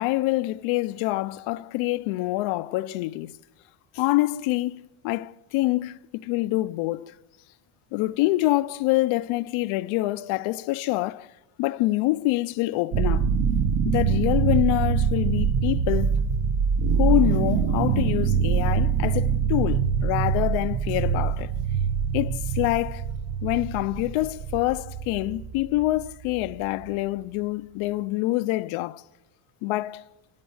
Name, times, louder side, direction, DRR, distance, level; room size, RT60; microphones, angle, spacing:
voice 1, 0.0-3.3 3.9-7.2 7.9-11.3 11.6-13.3 13.8-16.2 17.0-21.5 22.1-23.1 23.4-29.0 29.6-30.0, left 18 dB, 75° left, 0.7 m, -26 dB
sound 1, 12.9-26.9, right 6 dB, 50° right, 1.2 m, -24 dB
29.0 x 18.0 x 7.2 m
cardioid pair, 160°, 50 cm